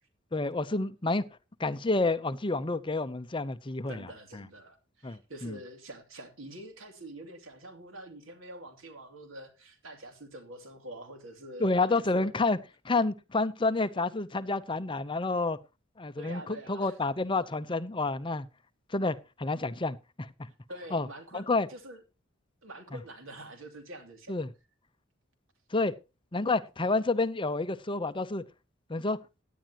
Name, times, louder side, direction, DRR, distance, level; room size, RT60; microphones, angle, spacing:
voice 1, 0.3-1.2 1.6-4.0 5.0-5.6 11.6-12.6 12.8-15.6 16.0-18.5 18.9-20.5 20.9-21.1 21.3-21.7 24.3-24.5 25.7-25.9 26.3-28.4 28.9-29.2, left 3 dB, 25° left, 0.7 m, -29 dB
voice 2, 3.9-12.3 16.2-16.9 20.7-22.0 22.6-24.3, right 1 dB, 90° right, 2.8 m, -46 dB
16.5 x 10.5 x 2.9 m
head